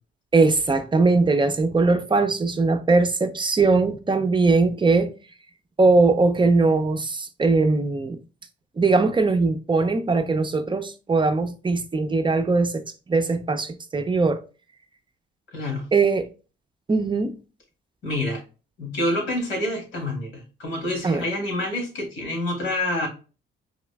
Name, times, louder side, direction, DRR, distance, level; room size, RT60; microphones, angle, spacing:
voice 1, 0.3-5.1 5.8-8.2 8.8-14.4 15.9-16.3 16.9-17.3 21.0-21.2, right 3 dB, 25° right, 0.5 m, -20 dB
voice 2, 15.5-15.9 18.0-18.4 18.8-23.1, left 1 dB, 90° left, 2.4 m, -27 dB
4.1 x 3.0 x 3.3 m
cardioid pair, 90°, 20 cm